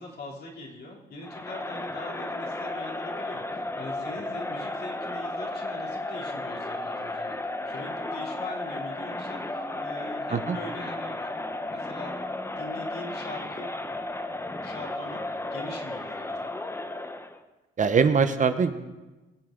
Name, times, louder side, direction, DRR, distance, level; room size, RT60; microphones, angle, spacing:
voice 1, 0.0-7.4 7.6-14.0 14.6-16.5, left 2 dB, 55° left, -2 dB, 3.1 m, -42 dB
Crowd, 1.2-17.4, left 2 dB, 15° left, 0.9 m, -34 dB
voice 2, 17.8-18.7, right 5 dB, 40° right, 9 dB, 0.9 m, -22 dB
23.0 x 7.7 x 3.8 m, 1.1 s
cardioid pair, 90°, 20 cm